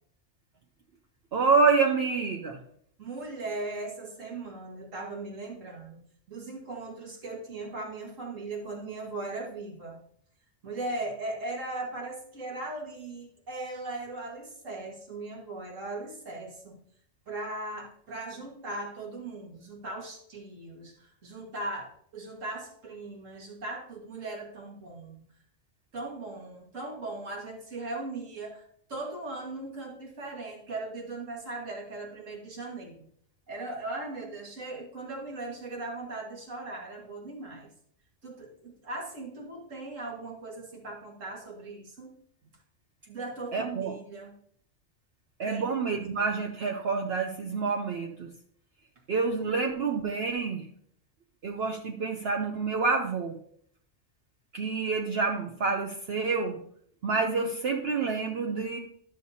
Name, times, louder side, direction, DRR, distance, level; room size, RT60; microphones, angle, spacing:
voice 1, 1.3-2.6 43.5-43.9 45.4-48.3 49.1-50.6 51.4-53.3 54.5-56.6 57.0-58.8, right 4 dB, 60° right, 2 dB, 0.9 m, -27 dB
voice 2, 3.0-6.0 6.3-10.0 10.6-16.8 17.3-25.2 25.9-33.1 33.5-37.7 38.2-42.1 43.1-44.3 45.5-45.7, right 2 dB, 80° right, -1 dB, 2.2 m, -38 dB
12.0 x 6.6 x 2.8 m, 0.65 s
omnidirectional pair, 1.3 m